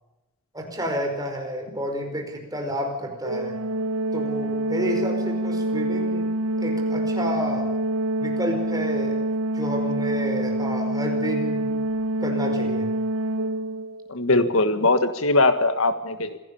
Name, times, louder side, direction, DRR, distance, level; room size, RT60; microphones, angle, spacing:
voice 1, 0.5-3.6 4.1-6.3 6.6-7.7 8.2-9.3 9.5-11.6 12.2-12.9, equal, 15° right, 3 dB, 4.9 m, -30 dB
Organ, 3.2-14.1, right 1 dB, 80° right, 1.2 m, -26 dB
voice 2, 14.1-16.4, left 2 dB, 70° left, 10 dB, 1.6 m, -21 dB
26.0 x 17.0 x 7.0 m, 1.0 s
head